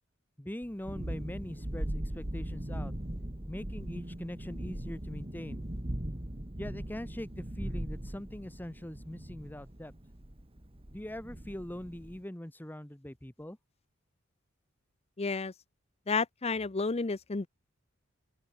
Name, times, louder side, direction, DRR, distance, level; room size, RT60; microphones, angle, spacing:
voice 1, 0.4-2.9 3.5-5.7 6.6-9.9 10.9-13.6, left 1 dB, 10° left, 1.0 m, -42 dB
Thunderstorm, 0.6-12.2, right 1 dB, 30° right, 1.8 m, -39 dB
voice 2, 15.2-15.5 16.1-17.5, left 4 dB, 30° left, 0.6 m, -31 dB
open air
head